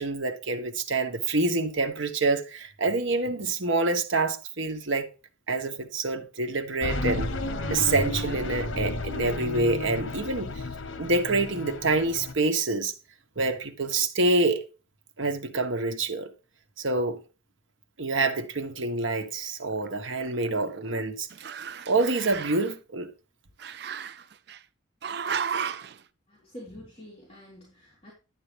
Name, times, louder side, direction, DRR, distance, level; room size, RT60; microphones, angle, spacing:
voice 1, 0.0-5.1 5.5-7.3 7.7-10.6 11.0-12.9 13.4-14.6 15.2-16.3 16.8-17.2 18.0-21.3 21.9-23.1, right 3 dB, 75° right, 1.3 m, -27 dB
sound 1, 6.8-12.3, left 2 dB, 75° left, 1.2 m, -32 dB
Growling, 19.8-21.0 21.3-22.7 23.6-24.6 25.0-26.0, right 7 dB, 55° right, 0.5 m, -34 dB
voice 2, 26.3-28.1, equal, 30° left, 3.6 m, -46 dB
11.5 x 8.7 x 3.4 m
head